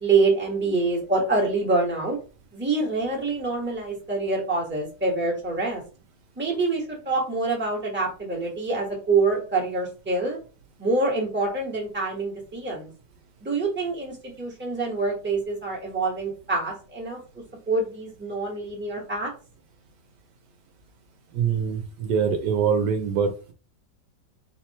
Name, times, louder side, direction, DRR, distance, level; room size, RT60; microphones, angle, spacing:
voice 1, 0.0-2.2 2.5-5.8 6.4-10.4 10.8-12.9 13.4-17.2 17.7-19.3, right 3 dB, 5° right, -1 dB, 1.2 m, -26 dB
voice 2, 21.3-23.5, right 6 dB, 70° right, 6 dB, 1.2 m, -24 dB
3.7 x 2.9 x 4.1 m, 0.35 s
omnidirectional pair, 2.0 m